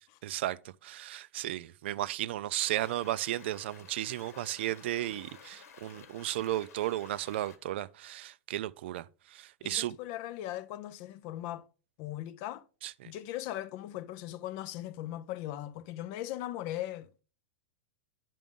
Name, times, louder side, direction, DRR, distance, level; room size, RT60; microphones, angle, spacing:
voice 1, 0.2-10.0 12.8-13.1, right 14 dB, 50° right, 0.3 m, -34 dB
sound 1, 2.6-7.6, left 7 dB, 80° left, 1.4 m, -53 dB
voice 2, 9.6-11.7 12.0-12.6 13.1-17.2, left 13 dB, 30° left, 0.3 m, -39 dB
10.5 x 5.1 x 3.6 m
supercardioid pair, 170°, 8 cm